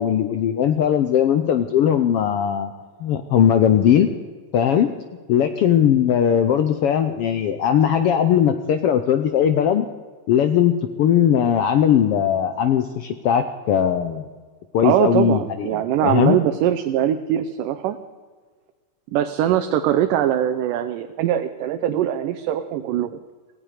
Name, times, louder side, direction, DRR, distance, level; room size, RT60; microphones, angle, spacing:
voice 1, 0.0-2.7 3.0-4.1 4.5-4.9 5.3-9.9 10.3-14.2 14.7-15.7 16.0-16.4, left 9 dB, 80° left, 9 dB, 1.3 m, -19 dB
voice 2, 14.8-18.0 19.1-23.2, right 11 dB, 90° right, 8 dB, 2.4 m, -22 dB
18.0 x 16.5 x 4.9 m, 1.5 s
omnidirectional pair, 3.7 m